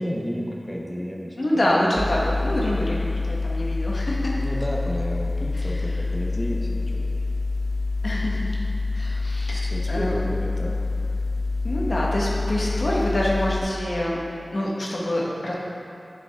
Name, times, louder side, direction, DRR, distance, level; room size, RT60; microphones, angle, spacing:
voice 1, 0.0-1.4 1.6-2.0 4.4-7.1 9.5-10.7, equal, 5° left, -3 dB, 0.9 m, -31 dB
voice 2, 1.4-4.4 5.5-6.0 8.0-8.4 8.9-9.6 9.9-10.1 11.6-14.2 14.5-15.5, left 1 dB, 65° left, -4 dB, 1.3 m, -26 dB
sound 1, 2.0-13.6, left 3 dB, 40° left, 1.3 m, -26 dB
9.8 x 5.0 x 3.5 m, 2.5 s
wide cardioid pair, 55°, 0 cm